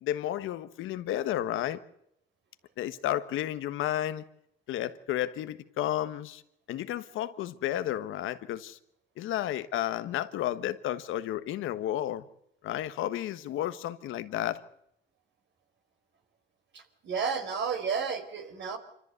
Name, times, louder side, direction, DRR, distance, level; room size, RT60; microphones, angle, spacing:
voice 1, 0.0-1.8 2.8-4.2 4.7-6.4 6.7-8.8 9.2-12.2 12.6-14.6, left 12 dB, 85° left, 1.4 m, -32 dB
voice 2, 16.7-18.8, right 6 dB, 65° right, 4.5 m, -32 dB
26.5 x 14.5 x 8.2 m
cardioid pair, 90°, 20 cm